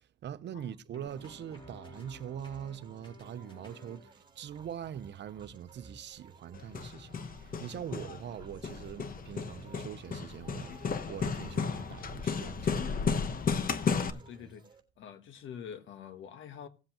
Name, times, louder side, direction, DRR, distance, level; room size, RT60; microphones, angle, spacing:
voice 1, 0.0-13.1, right 9 dB, 60° right, 0.8 m, -43 dB
voice 2, 0.5-1.0 13.7-14.6 15.0-16.7, left 8 dB, 75° left, 1.4 m, -46 dB
sound 1, 0.9-4.1, left 2 dB, 25° left, 4.2 m, -54 dB
sound 2, 1.1-14.8, right 4 dB, 25° right, 3.3 m, -57 dB
Hammer, 6.5-14.1, left 5 dB, 45° left, 1.0 m, -34 dB
17.5 x 7.7 x 3.0 m
cardioid pair, 90°, 20 cm